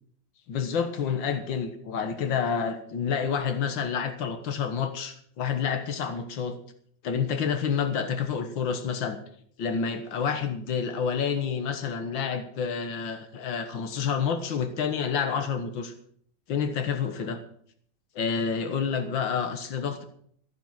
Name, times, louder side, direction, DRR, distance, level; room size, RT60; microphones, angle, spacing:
voice 1, 0.5-6.6 7.0-9.2 9.6-15.9 16.5-17.4 18.1-20.0, left 6 dB, 80° left, 7 dB, 1.0 m, -29 dB
14.5 x 10.5 x 6.0 m, 0.62 s
omnidirectional pair, 4.2 m